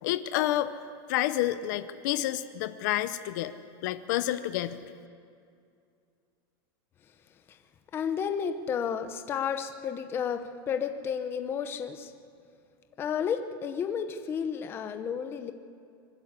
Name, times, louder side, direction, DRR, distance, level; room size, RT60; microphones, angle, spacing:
voice 1, 0.0-0.7 1.1-3.5 3.8-4.8, left 14 dB, 50° left, 12 dB, 0.8 m, -29 dB
voice 2, 7.9-12.1 13.0-15.5, left 7 dB, 20° left, 8 dB, 0.8 m, -32 dB
24.5 x 12.5 x 8.2 m, 2.4 s
supercardioid pair, 170°, 12 cm